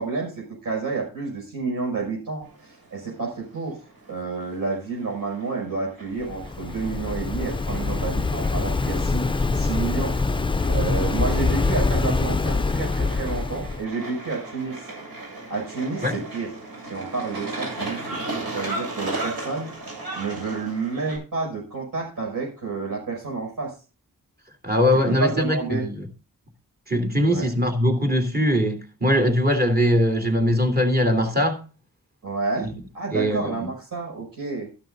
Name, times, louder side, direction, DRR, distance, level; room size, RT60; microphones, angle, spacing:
voice 1, 0.0-3.8 4.1-10.1 10.6-14.9 15.5-16.5 16.8-19.7 20.2-23.7 25.1-25.9 27.3-27.5 32.2-32.7 32.9-34.7, right 4 dB, 65° right, 6.2 m, -30 dB
sound 1, 2.4-21.2, right 2 dB, 85° right, 7.2 m, -37 dB
Waves surf, 6.2-13.8, left 3 dB, 15° left, 0.5 m, -24 dB
voice 2, 24.6-26.0 26.9-31.6 32.6-32.7 33.1-33.6, equal, 25° right, 3.1 m, -21 dB
13.5 x 12.0 x 2.6 m
wide cardioid pair, 130°, 36 cm